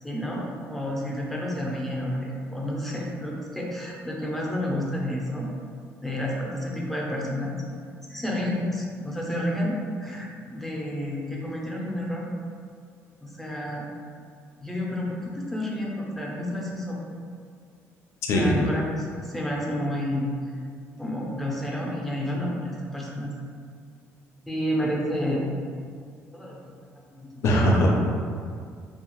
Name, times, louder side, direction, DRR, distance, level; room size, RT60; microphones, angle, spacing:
voice 1, 0.0-5.5 6.0-7.5 8.1-12.3 13.2-13.9 14.6-17.0 18.3-20.6 21.0-23.3 24.5-25.6 26.3-26.7 27.1-27.8, left 1 dB, 5° left, -3 dB, 0.4 m, -30 dB
voice 2, 18.3-18.7 27.4-27.9, equal, 60° left, -1 dB, 0.4 m, -20 dB
2.7 x 2.2 x 2.9 m, 2.1 s
cardioid pair, 150°, 5 cm